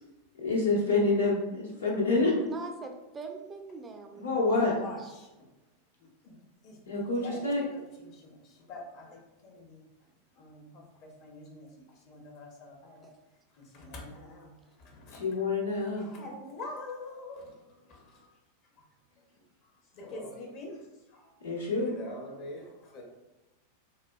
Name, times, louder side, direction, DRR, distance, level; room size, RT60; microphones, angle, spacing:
voice 1, 0.4-2.3 4.1-4.8 6.9-7.6 15.1-16.1 21.4-21.9, left 3 dB, 70° left, -3 dB, 0.9 m, -27 dB
voice 2, 2.4-4.7, right 4 dB, 20° right, 4 dB, 0.4 m, -42 dB
voice 3, 4.8-5.3 6.0-6.4 6.6-7.4 7.7-9.8 10.4-11.7 12.1-13.1 13.6-14.5 14.8-15.2 16.0-18.3 19.9-20.8 21.1-23.0, left 2 dB, 40° left, 1 dB, 0.8 m, -45 dB
4.0 x 2.2 x 2.2 m, 1.0 s
figure-of-eight pair, 90°, 0 cm